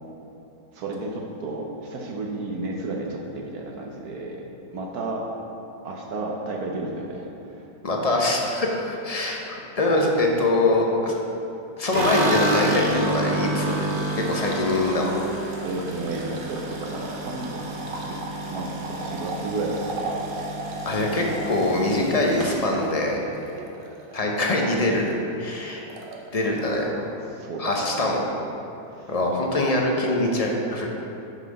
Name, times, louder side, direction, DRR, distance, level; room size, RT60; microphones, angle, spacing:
voice 1, 0.7-4.4 4.7-5.3 5.8-7.3 7.5-7.6 8.9-9.3 15.2-17.6 18.0-18.2 18.5-20.3 27.2-28.1 28.9-29.1, right 2 dB, 70° right, 0 dB, 1.2 m, -32 dB
voice 2, 7.8-9.4 9.8-11.1 11.8-13.9 14.2-15.1 20.9-23.2 24.1-25.1 25.4-25.8 26.3-26.9 27.6-28.2 29.1-30.9, left 2 dB, 40° left, -1 dB, 0.5 m, -23 dB
sound 1, 11.9-24.2 24.5-25.1 25.4-25.5 25.8-26.5, right 1 dB, 45° right, 0.8 m, -30 dB
6.5 x 5.8 x 5.2 m, 2.9 s
omnidirectional pair, 1.7 m